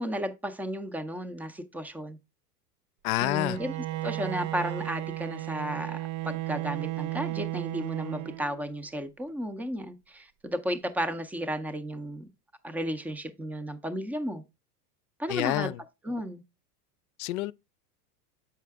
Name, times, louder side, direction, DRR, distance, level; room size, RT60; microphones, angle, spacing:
voice 1, 0.0-2.2 3.2-3.7 4.0-12.3 12.6-14.4 15.2-15.7 16.0-16.4, equal, 5° right, 0.4 m, -33 dB
voice 2, 3.0-3.6 15.3-15.8 17.2-17.5, left 17 dB, 70° left, 0.6 m, -28 dB
Bowed string instrument, 3.4-8.8, right 16 dB, 60° right, 0.5 m, -34 dB
7.4 x 5.7 x 3.4 m
supercardioid pair, 120°, 46 cm